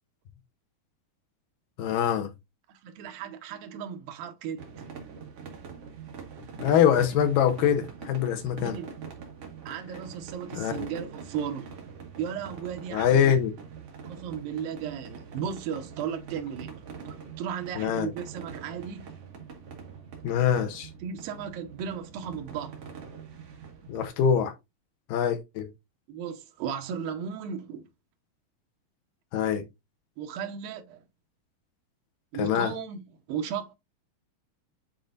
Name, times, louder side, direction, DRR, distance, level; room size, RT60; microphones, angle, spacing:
voice 1, 1.8-2.3 6.6-8.8 10.6-10.9 12.9-13.6 17.8-18.1 20.2-20.9 23.9-24.5 25.1-25.7 29.3-29.6 32.4-32.7, left 8 dB, 75° left, 2.4 m, -24 dB
voice 2, 2.7-4.7 8.6-8.9 9.7-11.7 12.2-13.3 14.1-19.1 21.0-22.8 26.1-27.9 30.2-31.0 32.3-33.0 33.3-33.8, right 8 dB, 80° right, 2.7 m, -35 dB
sound 1, 4.6-24.1, right 6 dB, 50° right, 2.0 m, -44 dB
10.0 x 3.8 x 2.5 m
omnidirectional pair, 4.2 m